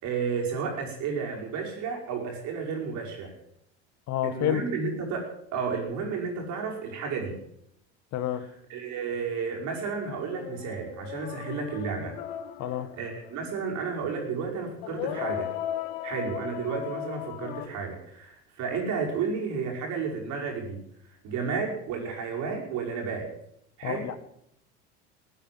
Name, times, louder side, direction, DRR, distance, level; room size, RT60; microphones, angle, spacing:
voice 1, 0.0-3.3 4.2-7.4 8.7-12.2 12.9-15.5 16.0-20.8 21.2-23.3 23.8-24.1, right 5 dB, 65° right, 0 dB, 5.4 m, -32 dB
voice 2, 4.1-4.6 8.1-8.5 12.6-12.9 23.8-24.2, left 12 dB, 55° left, 12 dB, 1.5 m, -29 dB
sound 1, 10.3-13.5 14.8-17.7, left 11 dB, 75° left, 1.3 m, -36 dB
16.0 x 9.3 x 7.7 m, 0.73 s
hypercardioid pair, 80°, 32 cm